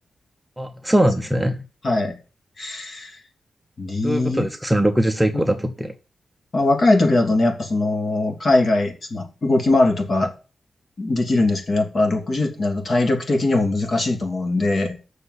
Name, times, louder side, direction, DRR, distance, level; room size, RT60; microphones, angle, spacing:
voice 1, 0.6-1.6 4.0-5.9, right 1 dB, 5° right, 0.9 m, -21 dB
voice 2, 1.8-2.1 2.6-3.2 3.8-4.4 6.5-10.3 11.0-15.0, left 2 dB, 50° left, 2.8 m, -20 dB
7.7 x 6.5 x 8.2 m
wide cardioid pair, 135°, 0 cm